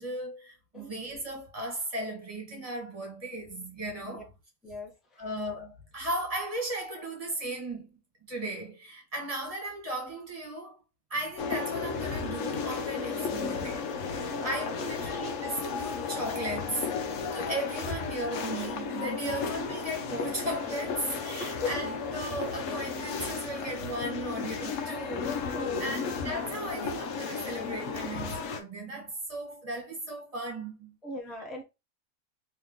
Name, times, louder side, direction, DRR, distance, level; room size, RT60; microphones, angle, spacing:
voice 1, 0.0-4.3 5.2-8.0 8.3-10.8 11.1-30.9, right 1 dB, 25° right, 1.3 m, -36 dB
sound 1, 11.4-28.6, left 5 dB, 65° left, 1.0 m, -34 dB
voice 2, 14.2-15.1 19.2-19.3 21.4-21.7 25.5-26.0 31.0-31.6, left 2 dB, ahead, 0.5 m, -38 dB
3.2 x 2.8 x 3.6 m
omnidirectional pair, 1.6 m